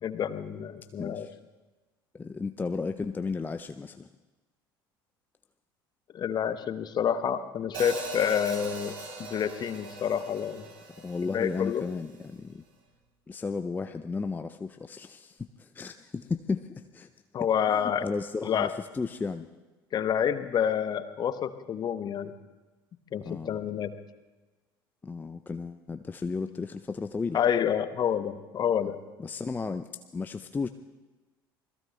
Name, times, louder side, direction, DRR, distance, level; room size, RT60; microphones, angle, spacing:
voice 1, 0.0-1.3 6.1-10.7 11.2-11.8 17.3-18.1 18.4-18.7 19.9-22.3 23.1-23.9 27.3-29.0, left 8 dB, 35° left, 11 dB, 0.9 m, -28 dB
voice 2, 1.0-1.4 2.1-4.1 11.0-12.6 13.3-17.1 17.4-19.5 23.2-23.6 25.0-27.4 29.2-30.7, left 4 dB, 15° left, 8 dB, 0.5 m, -34 dB
Hi-hat, 7.7-11.9, right 3 dB, 60° right, 3.5 m, -40 dB
28.0 x 21.5 x 2.2 m, 1.2 s
figure-of-eight pair, 65°, 12 cm